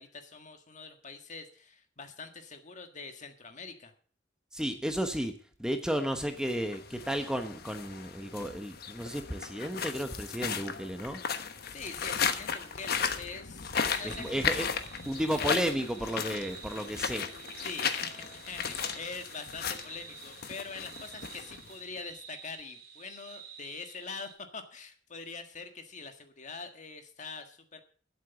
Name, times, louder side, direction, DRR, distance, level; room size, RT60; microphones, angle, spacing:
voice 1, 0.0-3.9 11.7-14.4 17.6-27.8, left 4 dB, 40° left, 6 dB, 1.7 m, -44 dB
voice 2, 4.5-11.2 14.0-14.7 15.1-17.3, equal, 5° right, 6 dB, 1.0 m, -33 dB
sound 1, 6.3-22.0, left 6 dB, 60° left, 1.2 m, -36 dB
sound 2, 13.1-15.6 17.0-19.5, left 2 dB, 25° left, 4.0 m, -60 dB
sound 3, 13.7-24.3, right 7 dB, 55° right, 2.8 m, -50 dB
12.0 x 8.0 x 7.0 m, 0.43 s
head